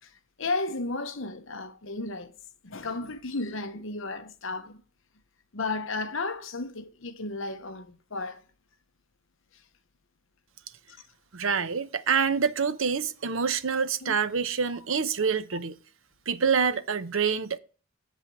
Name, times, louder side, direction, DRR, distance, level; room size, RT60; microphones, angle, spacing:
voice 1, 0.4-2.3 2.6-4.8 5.5-7.9 8.1-8.4 14.0-14.1, left 3 dB, 60° left, 0.9 m, -33 dB
voice 2, 11.3-15.8 16.3-17.6, right 6 dB, 65° right, 0.7 m, -26 dB
8.1 x 7.5 x 4.7 m
head